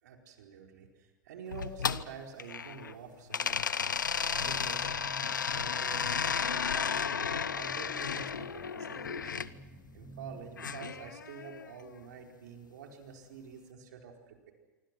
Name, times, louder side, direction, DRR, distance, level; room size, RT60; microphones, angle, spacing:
voice 1, 0.0-3.6 4.1-5.0 5.5-9.5 9.9-14.5, right 6 dB, 65° right, 3 dB, 4.6 m, -47 dB
sound 1, 1.5-2.9 3.3-9.5 10.6-11.7, left 7 dB, 80° left, 0.8 m, -33 dB
sound 2, 4.3-11.1, right 1 dB, 5° left, 7.8 m, -52 dB
26.0 x 25.5 x 6.2 m, 1.2 s
figure-of-eight pair, 90°, 10 cm